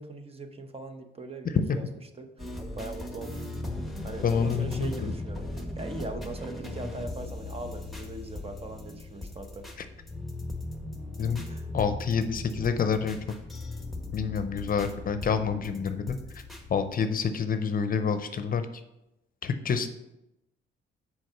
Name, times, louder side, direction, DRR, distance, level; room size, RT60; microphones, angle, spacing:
voice 1, 0.0-1.9 2.2-3.4 4.0-9.7 11.5-11.7, right 2 dB, 30° right, 6 dB, 1.0 m, -40 dB
sound 1, 2.4-16.9, left 2 dB, ahead, 1.3 m, -38 dB
voice 2, 4.2-5.1 11.2-11.4 11.7-13.4 14.1-16.2 16.7-18.7 19.4-19.9, left 6 dB, 45° left, 10 dB, 0.7 m, -27 dB
6.3 x 4.7 x 5.8 m, 0.90 s
cardioid pair, 90°, 20 cm